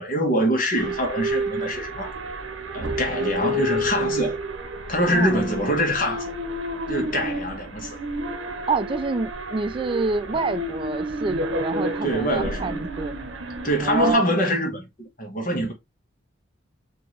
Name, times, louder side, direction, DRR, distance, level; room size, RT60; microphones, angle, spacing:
voice 1, 0.0-2.1 2.7-4.4 4.9-6.3 6.9-8.0 12.0-12.8 13.6-15.7, equal, 45° left, 1.3 m, -24 dB
sound 1, 0.8-14.2, right 1 dB, 70° right, 0.8 m, -30 dB
voice 2, 5.0-5.3 8.7-13.1 13.8-14.3, right 3 dB, 25° right, 0.3 m, -27 dB
4.5 x 2.8 x 3.1 m
head